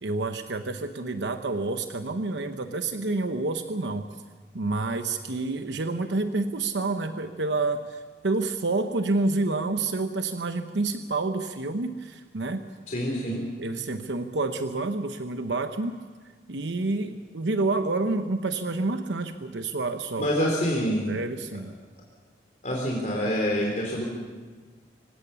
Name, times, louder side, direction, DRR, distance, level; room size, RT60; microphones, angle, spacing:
voice 1, 0.0-4.1 4.5-12.6 13.3-16.0 16.5-20.3 20.8-21.8, right 3 dB, 80° right, 7 dB, 0.9 m, -28 dB
voice 2, 12.9-13.4 20.2-21.1 22.6-24.0, equal, 45° left, -2 dB, 3.5 m, -26 dB
25.5 x 17.0 x 7.0 m, 1.4 s
head